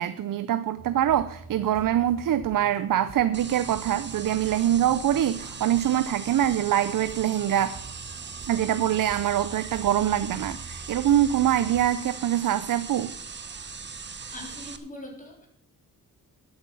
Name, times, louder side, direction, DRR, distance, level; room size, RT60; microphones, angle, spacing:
voice 1, 0.0-7.8 8.5-13.1, right 11 dB, 65° right, 14 dB, 0.6 m, -24 dB
sound 1, 0.8-11.9, right 4 dB, 90° right, 3.8 m, -46 dB
sound 2, 3.3-14.8, right 5 dB, 30° right, 0.9 m, -40 dB
voice 2, 14.3-15.5, left 1 dB, 20° left, 0 dB, 3.7 m, -41 dB
12.0 x 8.6 x 5.6 m, 0.68 s
wide cardioid pair, 115°, 35 cm